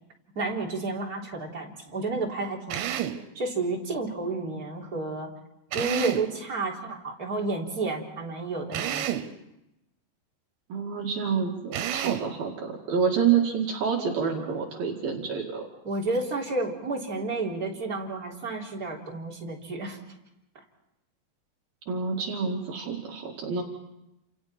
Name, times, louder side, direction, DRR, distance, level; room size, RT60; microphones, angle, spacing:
voice 1, 0.3-2.8 3.3-5.3 5.7-9.1 15.8-20.0, right 3 dB, 20° right, -2 dB, 3.5 m, -31 dB
Drill, 2.7-3.3 5.7-6.4 8.7-9.3 11.7-12.3, right 11 dB, 90° right, 3.4 m, -30 dB
voice 2, 10.7-15.6 21.9-23.6, right 6 dB, 60° right, 0 dB, 3.8 m, -28 dB
29.5 x 28.0 x 4.4 m, 0.88 s
omnidirectional pair, 5.0 m